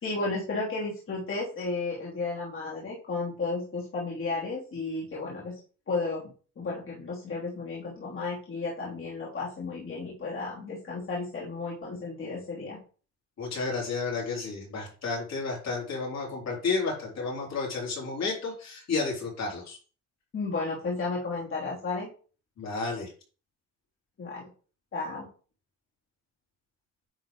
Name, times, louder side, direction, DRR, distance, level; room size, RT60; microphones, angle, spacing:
voice 1, 0.0-5.6 5.9-12.8 20.3-22.1 24.2-24.4 24.9-25.3, left 3 dB, 45° left, -6 dB, 3.0 m, -33 dB
voice 2, 13.4-19.8 22.6-23.1, left 4 dB, 60° left, -2 dB, 4.0 m, -31 dB
9.9 x 3.9 x 3.8 m, 0.38 s
cardioid pair, 90°, 30 cm